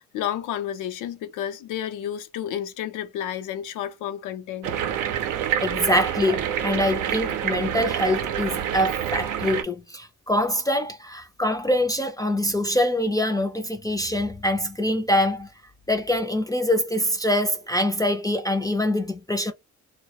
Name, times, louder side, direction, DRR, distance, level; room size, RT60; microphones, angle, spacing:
voice 1, 0.0-4.7, left 10 dB, 90° left, 0.5 m, -31 dB
sound 1, 4.6-9.6, right 9 dB, 90° right, 0.5 m, -27 dB
voice 2, 5.6-15.5 15.9-19.5, left 1 dB, 10° left, 0.4 m, -24 dB
2.2 x 2.0 x 2.7 m
cardioid pair, 90°, 30 cm